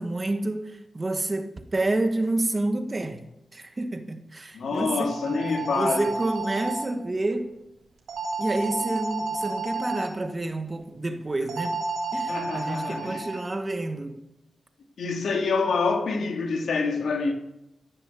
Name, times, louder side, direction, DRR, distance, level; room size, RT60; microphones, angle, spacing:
voice 1, 0.0-3.3 3.5-5.4 5.7-7.5 8.4-11.8 12.1-14.2, right 2 dB, 20° right, 1.3 m, -29 dB
voice 2, 4.5-6.1 12.3-13.3 15.0-17.3, left 4 dB, 70° left, 2.8 m, -26 dB
sound 1, 4.9-6.8 8.1-10.1 11.5-13.5, right 3 dB, 90° right, 4.3 m, -31 dB
15.0 x 10.5 x 8.4 m
wide cardioid pair, 170°, 0 cm